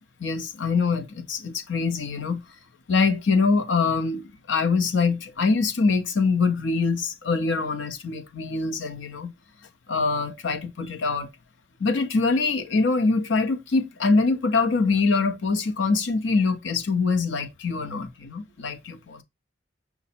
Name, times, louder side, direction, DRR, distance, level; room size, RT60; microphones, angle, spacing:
voice 1, 0.2-2.4 2.9-9.3 9.9-11.3 11.8-19.2, left 4 dB, 70° left, 0.6 m, -24 dB
5.8 x 2.0 x 4.1 m
head